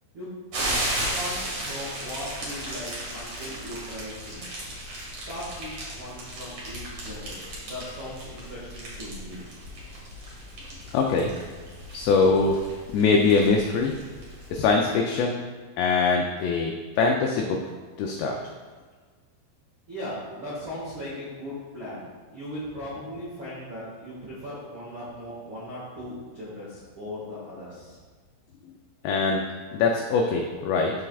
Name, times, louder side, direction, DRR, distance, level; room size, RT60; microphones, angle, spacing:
sound 1, 0.5-14.7, right 1 dB, 55° right, 1.9 m, -35 dB
voice 1, 1.1-4.5 5.3-9.4 19.9-22.0 22.3-28.0, left 1 dB, 80° right, -9 dB, 1.1 m, -38 dB
voice 2, 10.9-11.3 11.9-12.6 12.9-13.9 14.5-15.4 15.8-16.7 17.0-17.6 18.0-18.4 29.0-29.4 29.7-30.9, left 4 dB, 90° left, 1 dB, 2.4 m, -22 dB
14.0 x 4.7 x 2.4 m, 1.4 s
omnidirectional pair, 5.6 m